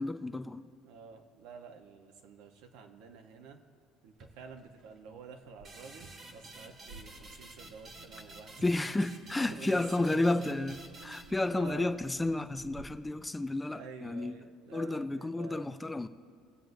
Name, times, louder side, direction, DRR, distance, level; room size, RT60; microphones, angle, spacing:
voice 1, 0.0-0.6 8.6-10.8 11.0-14.3 14.7-16.1, left 2 dB, 10° left, 0.4 m, -31 dB
voice 2, 0.8-3.6 4.0-8.5 9.4-10.6 11.0-11.9 13.7-15.7, right 5 dB, 75° right, 1.0 m, -49 dB
sound 1, 4.1-13.2, right 3 dB, 50° right, 1.8 m, -57 dB
sound 2, 5.6-12.0, right 2 dB, 35° right, 1.4 m, -51 dB
22.5 x 7.8 x 2.6 m
supercardioid pair, 110°, 0 cm